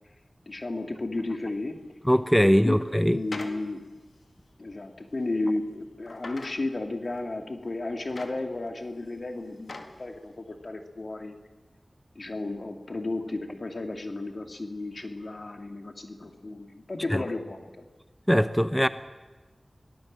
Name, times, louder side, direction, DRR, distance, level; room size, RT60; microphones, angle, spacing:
voice 1, 0.5-1.8 2.6-3.8 4.6-11.4 12.1-17.9, left 2 dB, 65° left, 5 dB, 2.5 m, -33 dB
sound 1, 1.1-1.3 2.4-3.6 4.1-4.2 5.1-5.5 6.1-6.6 7.2-7.3 7.9-8.9 9.2-10.0 10.5-10.6, left 3 dB, 90° left, 2.0 m, -42 dB
voice 2, 2.1-3.2 17.1-17.2 18.3-18.9, equal, 5° left, 12 dB, 0.8 m, -21 dB
24.5 x 18.5 x 7.6 m, 1.2 s
wide cardioid pair, 50°, 0 cm